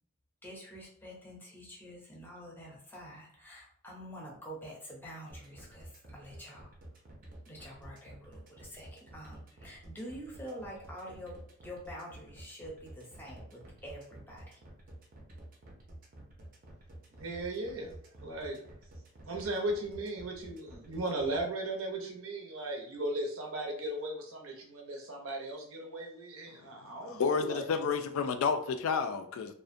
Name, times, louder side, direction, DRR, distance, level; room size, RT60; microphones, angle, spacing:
voice 1, 0.4-6.7 7.5-14.6, equal, 10° left, 0.5 m, -47 dB
sound 1, 5.3-21.4, right 1 dB, 40° right, 0.5 m, -50 dB
voice 2, 17.2-17.9 18.2-18.6 19.3-27.8, right 1 dB, 80° right, 0.6 m, -37 dB
voice 3, 26.8-29.5, left 5 dB, 80° left, 0.3 m, -31 dB
2.4 x 2.1 x 2.5 m
head